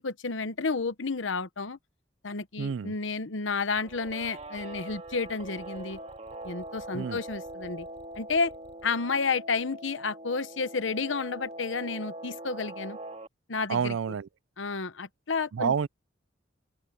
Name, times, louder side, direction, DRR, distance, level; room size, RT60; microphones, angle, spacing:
voice 1, 0.0-1.8 2.2-6.0 6.4-7.9 8.2-8.5 8.8-13.0 13.5-13.9 14.6-15.7, left 4 dB, 85° left, 1.0 m, -31 dB
voice 2, 2.6-2.9 6.9-7.2 13.7-14.3 15.5-15.9, right 6 dB, 90° right, 0.4 m, -29 dB
sound 1, 3.7-8.9, equal, 40° left, 3.0 m, -57 dB
Guitar, 3.8-13.3, right 1 dB, 35° right, 2.2 m, -42 dB
open air
head